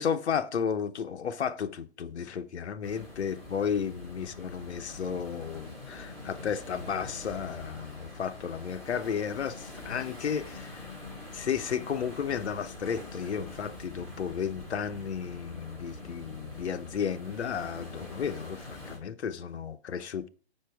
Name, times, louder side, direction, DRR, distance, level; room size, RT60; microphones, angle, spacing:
voice 1, 0.0-10.8 11.3-20.3, left 7 dB, 85° left, 0.9 m, -33 dB
sound 1, 2.8-19.0, left 2 dB, ahead, 2.3 m, -44 dB
6.7 x 5.6 x 4.6 m
hypercardioid pair, 165°, 33 cm